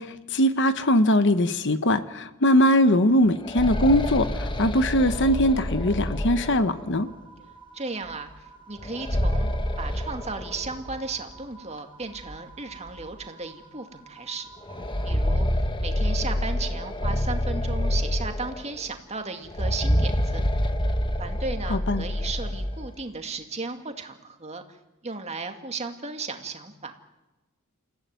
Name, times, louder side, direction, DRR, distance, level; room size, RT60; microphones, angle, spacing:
voice 1, 0.0-7.1 21.7-22.0, equal, 55° left, 11 dB, 1.2 m, -21 dB
sound 1, 3.2-7.0 8.8-11.0 11.3-11.4 12.3-12.4 12.9-13.0 14.6-18.8 19.5-22.9, left 1 dB, 20° left, 1.5 m, -27 dB
sound 2, 5.0-15.1, right 4 dB, 5° right, 5.3 m, -51 dB
voice 2, 7.7-9.5 9.8-14.5 15.0-20.4 21.2-24.8 25.0-26.9, right 3 dB, 30° right, 5 dB, 2.3 m, -35 dB
29.0 x 16.0 x 9.3 m, 1.1 s
head